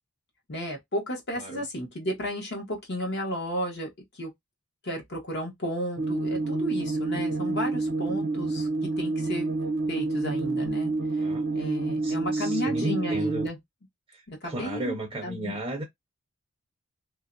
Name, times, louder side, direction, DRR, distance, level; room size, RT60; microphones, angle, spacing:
voice 1, 0.5-4.3 4.8-9.5 9.9-10.9 11.5-13.6 14.3-15.0 15.2-15.6, equal, 50° left, 1.1 m, -33 dB
sound 1, 6.0-13.5, right 3 dB, 65° right, 0.7 m, -28 dB
voice 2, 11.2-11.7 12.0-13.5 14.1-15.8, right 1 dB, 25° right, 0.6 m, -35 dB
2.5 x 2.1 x 2.5 m
head